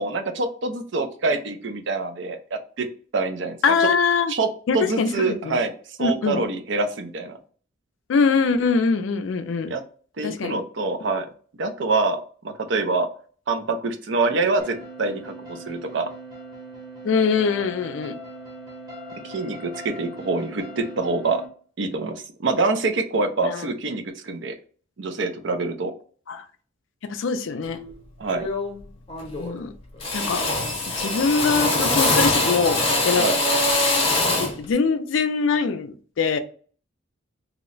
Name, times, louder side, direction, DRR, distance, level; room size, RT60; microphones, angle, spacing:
voice 1, 0.0-2.9 3.1-3.9 4.3-4.5 4.7-5.7 6.0-7.4 9.7-9.8 10.2-11.3 11.6-12.2 12.4-13.1 13.5-16.1 19.2-21.4 21.8-24.5 25.0-25.9 28.2-28.5 33.2-33.4, right 3 dB, 65° right, 6 dB, 0.5 m, -25 dB
voice 2, 3.6-4.3 4.7-5.6 6.0-6.4 8.1-9.7 10.2-10.5 17.0-18.2 23.4-23.7 26.3-26.4 27.0-27.8 29.4-29.7 30.1-30.5 31.0-33.2 34.4-36.4, left 5 dB, 70° left, 10 dB, 0.4 m, -23 dB
sound 1, 14.6-21.5, right 1 dB, 20° right, 0.8 m, -40 dB
Drill, 27.7-27.9 28.3-28.8 29.1-29.7 30.0-34.6, left 2 dB, 30° left, 0.7 m, -23 dB
2.9 x 2.1 x 3.8 m, 0.43 s
head